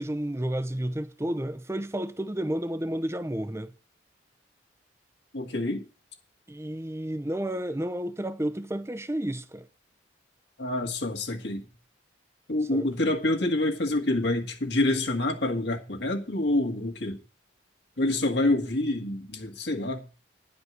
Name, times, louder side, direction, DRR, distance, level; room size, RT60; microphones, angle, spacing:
voice 1, 0.0-3.7 6.5-9.7 12.7-12.9, right 1 dB, 15° right, 0.7 m, -31 dB
voice 2, 5.3-5.9 10.6-11.6 12.5-17.2 18.0-20.0, left 2 dB, 65° left, 1.9 m, -27 dB
11.0 x 5.2 x 8.0 m
head